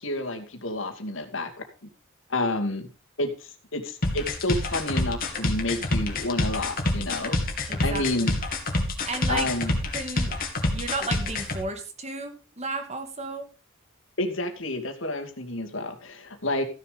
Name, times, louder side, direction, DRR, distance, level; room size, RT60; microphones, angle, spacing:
voice 1, 0.0-1.7 2.3-2.9 3.2-7.5 7.8-8.4 9.3-9.7 14.2-16.6, left 2 dB, 75° left, 4 dB, 2.3 m, -29 dB
sound 1, 4.0-11.6, left 2 dB, 45° left, 2.6 m, -26 dB
voice 2, 7.7-8.3 8.8-9.5 9.9-10.4 10.7-13.5, right 3 dB, 35° right, 7 dB, 2.0 m, -33 dB
15.0 x 7.2 x 5.1 m, 0.34 s
head